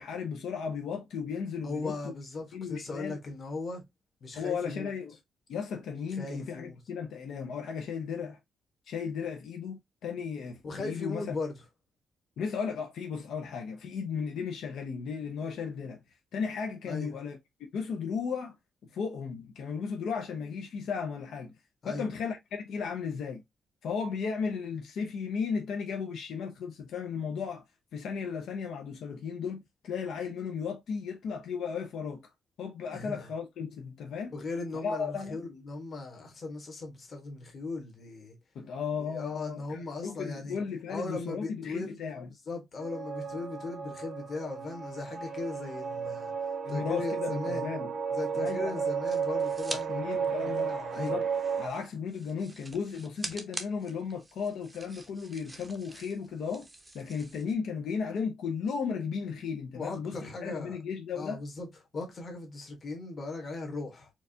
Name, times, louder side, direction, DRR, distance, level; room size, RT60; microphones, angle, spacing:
voice 1, 0.0-2.1 2.5-3.2 4.3-5.2 5.5-8.4 8.9-11.3 12.4-16.0 16.3-17.4 17.7-18.6 18.9-21.5 21.8-23.4 23.8-27.6 27.9-32.2 32.6-34.4 34.8-35.4 38.5-42.3 46.6-47.9 48.3-48.9 49.9-51.3 51.6-56.7 56.9-61.4, left 6 dB, 75° left, 0.7 m, -35 dB
voice 2, 1.6-3.8 4.2-4.9 6.1-6.8 10.6-11.5 16.8-17.1 21.8-22.1 32.9-33.2 34.3-38.4 39.1-40.6 40.9-42.0 42.5-46.3 46.7-47.7 48.1-50.0 50.6-51.2 59.8-60.8 61.1-61.7 61.9-64.1, left 3 dB, 35° left, 1.3 m, -38 dB
sound 1, 42.8-51.7, right 6 dB, 50° right, 0.7 m, -33 dB
sound 2, 48.4-49.8 50.2-57.5, right 2 dB, 10° right, 0.6 m, -45 dB
4.5 x 2.4 x 2.7 m
wide cardioid pair, 165°, 0 cm